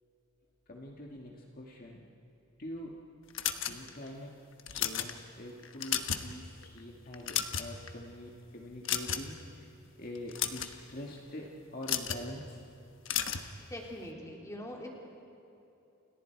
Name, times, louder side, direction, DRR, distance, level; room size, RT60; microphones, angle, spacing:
voice 1, 0.7-2.0 2.6-3.0 3.6-4.3 4.7-9.7 10.0-12.6, left 1 dB, 40° left, -1 dB, 1.9 m, -44 dB
sound 1, 3.3-4.1 4.6-5.1 5.6-6.3 6.6-6.8 7.1-7.9 8.8-9.4 10.1-10.7 11.8-12.2 13.0-13.5, left 9 dB, 60° left, 1.3 m, -33 dB
voice 2, 13.6-14.9, left 1 dB, 15° left, -1 dB, 3.2 m, -43 dB
29.5 x 29.0 x 4.7 m, 2.9 s
head